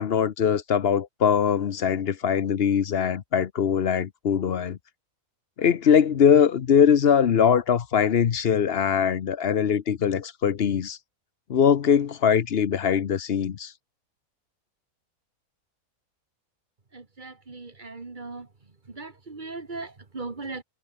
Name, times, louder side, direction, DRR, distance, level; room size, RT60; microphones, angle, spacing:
voice 1, 0.0-4.8 5.6-11.0 11.5-13.7, left 7 dB, 50° left, 0.9 m, -22 dB
voice 2, 16.9-18.5 18.9-20.6, right 3 dB, 35° right, 1.8 m, -38 dB
omnidirectional pair, 1.5 m